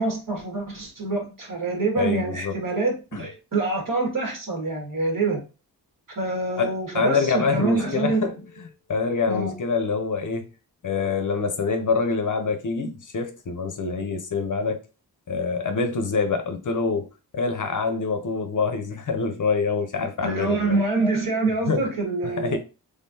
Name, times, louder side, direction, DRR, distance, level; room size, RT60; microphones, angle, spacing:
voice 1, 0.0-5.4 6.2-8.3 9.3-9.5 20.2-22.6, right 3 dB, 55° right, 2.0 m, -26 dB
voice 2, 2.0-2.6 3.1-3.3 6.6-10.5 10.8-14.8 15.3-17.1 17.3-20.8 21.7-21.9 22.2-22.6, left 4 dB, 50° left, 0.7 m, -26 dB
3.7 x 3.4 x 2.7 m
wide cardioid pair, 115°, 40 cm